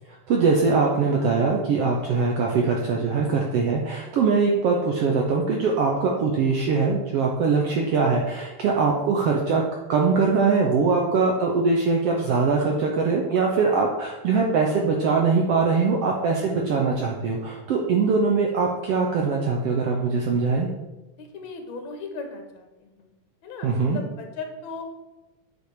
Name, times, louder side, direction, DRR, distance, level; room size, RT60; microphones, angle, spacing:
voice 1, 0.1-9.6 9.9-20.7 23.6-24.0, right 4 dB, 70° right, 0 dB, 1.5 m, -22 dB
voice 2, 21.2-23.1 23.4-24.8, left 3 dB, 65° left, 4 dB, 2.4 m, -37 dB
8.6 x 5.3 x 4.8 m, 1.0 s
omnidirectional pair, 3.6 m